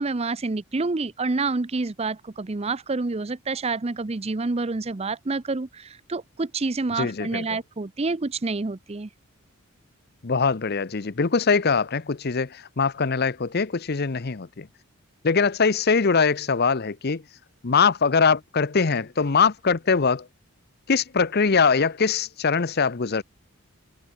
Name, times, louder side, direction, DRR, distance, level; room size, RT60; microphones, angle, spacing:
voice 1, 0.0-9.1, right 3 dB, 30° right, 0.6 m, -28 dB
voice 2, 7.0-7.6 10.2-14.7 15.2-17.2 17.6-20.3 20.9-23.2, left 5 dB, 50° left, 0.7 m, -22 dB
head